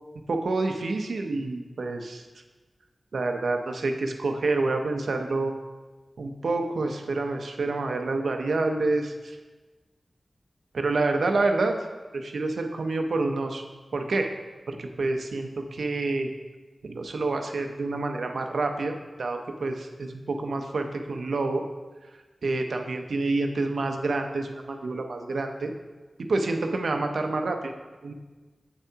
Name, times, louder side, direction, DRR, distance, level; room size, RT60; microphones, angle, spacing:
voice 1, 0.3-2.2 3.1-5.5 6.2-9.4 10.7-11.7 12.1-13.6 13.9-14.3 14.7-16.3 16.8-21.6 22.4-25.7 26.3-27.7 28.0-28.1, right 3 dB, 90° right, 5 dB, 0.6 m, -28 dB
8.1 x 7.0 x 2.8 m, 1.3 s
wide cardioid pair, 95°, 0 cm